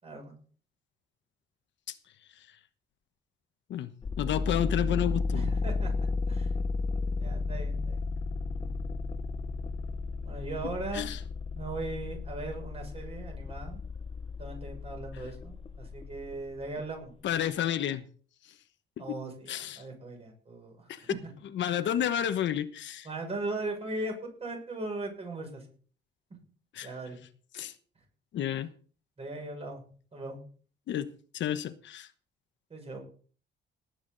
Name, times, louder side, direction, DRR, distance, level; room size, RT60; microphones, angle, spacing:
voice 1, 0.0-0.3 5.3-5.9 6.3-6.5 7.2-8.0 10.2-11.1 11.5-13.8 14.4-17.1 19.0-19.5 19.8-20.9 21.2-21.3 23.0-25.6 26.8-27.2 29.2-29.8 30.1-30.4 32.7-33.0, right 2 dB, 30° right, 6.5 m, -38 dB
sound 1, 4.0-16.7, left 3 dB, 30° left, 0.9 m, -33 dB
voice 2, 4.2-5.5 10.9-11.2 17.2-18.0 19.0-19.1 19.5-19.8 20.9-21.0 21.5-23.1 26.7-26.9 27.5-27.7 28.3-28.7 30.9-31.1 31.3-32.1, left 10 dB, 75° left, 1.1 m, -30 dB
19.0 x 9.5 x 4.0 m
cardioid pair, 145°, 19 cm